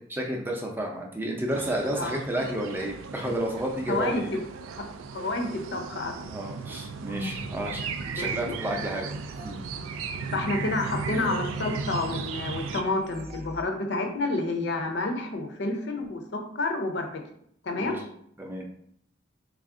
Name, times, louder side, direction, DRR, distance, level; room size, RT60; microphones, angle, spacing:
voice 1, 0.1-4.3 6.3-7.8 8.1-9.6 17.7-18.0 18.4-18.7, right 1 dB, 10° right, 0 dB, 0.5 m, -31 dB
sound 1, 1.5-12.8, right 5 dB, 85° right, 0.3 m, -36 dB
voice 2, 3.9-4.2 5.1-6.3 8.2-8.5 10.0-17.2 17.6-18.0, left 2 dB, 60° left, 4 dB, 0.6 m, -29 dB
sound 2, 6.9-13.6, equal, 50° right, 0.6 m, -44 dB
3.4 x 2.4 x 3.6 m, 0.68 s
head